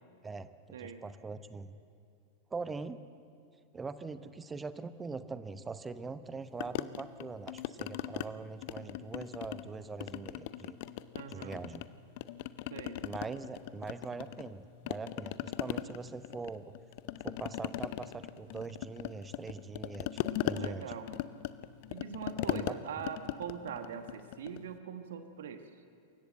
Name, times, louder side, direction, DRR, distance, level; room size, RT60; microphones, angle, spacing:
voice 1, 0.2-1.8 2.5-3.0 3.7-10.8 11.3-11.8 13.0-16.7 17.2-20.9 22.3-22.8, right 4 dB, 15° right, 13 dB, 0.9 m, -42 dB
sound 1, 6.6-8.3 8.6-9.7 10.0-11.9 12.2-14.6 14.9-24.7, left 14 dB, 50° left, 0.6 m, -39 dB
voice 2, 11.1-11.6 12.7-13.0 20.5-21.1 21.9-25.7, right 7 dB, 60° right, 8 dB, 1.3 m, -42 dB
27.5 x 15.5 x 7.8 m, 2.4 s
figure-of-eight pair, 90°, 0 cm